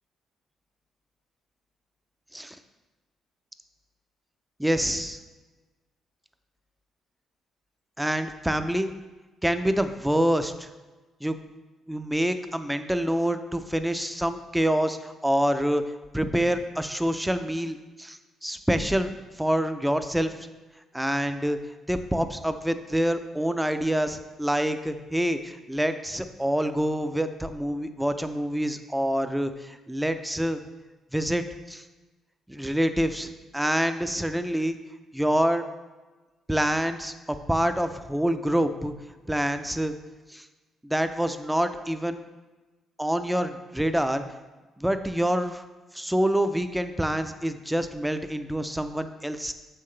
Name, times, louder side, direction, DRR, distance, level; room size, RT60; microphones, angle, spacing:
voice 1, 4.6-5.2 8.0-8.9 9.4-10.7 11.2-11.4 11.9-15.8 16.1-19.1 19.4-20.3 20.9-21.6 21.9-30.6 31.1-31.8 32.5-34.8 35.1-35.6 36.5-38.9 39.3-39.9 40.3-40.5 40.8-42.2 43.0-44.2 44.8-45.6 45.9-49.5, equal, 5° right, 9 dB, 0.5 m, -26 dB
7.3 x 5.7 x 3.2 m, 1.2 s
cardioid pair, 90°, 0 cm